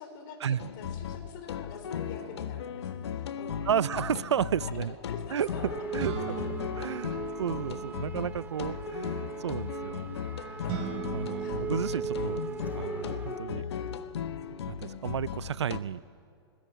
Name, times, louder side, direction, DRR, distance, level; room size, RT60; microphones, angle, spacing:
voice 1, 0.0-3.8 5.1-6.6 6.8-7.2 8.0-8.2 10.6-11.0 11.4-11.7 13.8-14.0, left 5 dB, 45° left, 6 dB, 4.3 m, -47 dB
sound 1, 0.6-15.8, left 8 dB, 75° left, 1.2 m, -37 dB
voice 2, 3.7-4.9 5.3-5.5 5.9-6.4 6.8-10.1 11.1-12.4 12.8-13.7 14.7-16.0, right 8 dB, 85° right, 20 dB, 0.5 m, -32 dB
sound 2, 5.4-13.4, right 6 dB, 10° right, 1.1 m, -39 dB
sound 3, 6.0-8.0 10.7-12.8, right 5 dB, 40° right, 6.1 m, -39 dB
20.0 x 19.5 x 9.0 m, 2.4 s
hypercardioid pair, 130°, 14 cm